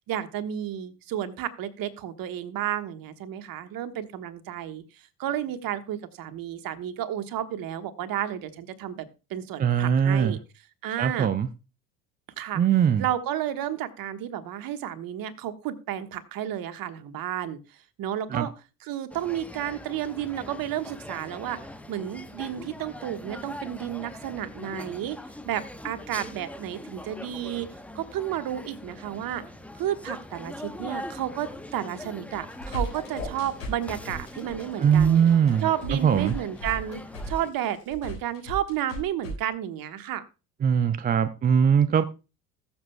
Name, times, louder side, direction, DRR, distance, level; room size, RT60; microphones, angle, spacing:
voice 1, 0.1-4.8 5.2-10.4 10.8-11.3 12.4-12.6 13.0-17.6 18.0-18.5 18.8-21.6 21.9-25.2 25.4-27.7 27.9-29.4 29.8-35.2 35.6-40.2, right 11 dB, 45° right, 1.3 m, -32 dB
voice 2, 9.6-10.4 11.0-11.5 12.6-13.0 18.3-18.5 34.8-36.3 40.6-42.0, right 8 dB, 20° right, 0.5 m, -21 dB
sound 1, 19.1-37.5, left 1 dB, 5° left, 0.9 m, -42 dB
sound 2, 32.3-39.3, right 1 dB, 85° left, 3.9 m, -36 dB
20.5 x 7.1 x 2.2 m
figure-of-eight pair, 60°, 46 cm